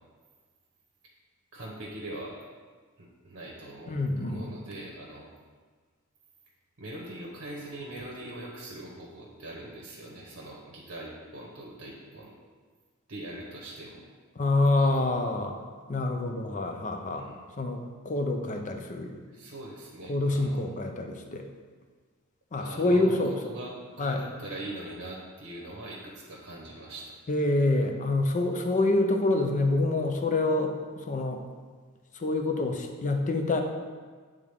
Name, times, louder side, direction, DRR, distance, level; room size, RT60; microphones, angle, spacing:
voice 1, 1.5-2.4 3.0-5.3 6.8-12.3 13.1-14.0 14.8-15.1 17.1-17.3 19.3-20.7 22.5-23.7 24.0-27.1, right 1 dB, 60° right, -3 dB, 1.0 m, -42 dB
voice 2, 3.9-4.5 14.4-15.6 15.9-17.3 17.6-19.2 20.1-21.4 22.5-23.3 24.0-24.3 27.3-31.4 32.1-33.6, left 2 dB, 35° left, 4 dB, 0.6 m, -27 dB
8.4 x 3.6 x 3.6 m, 1.5 s
head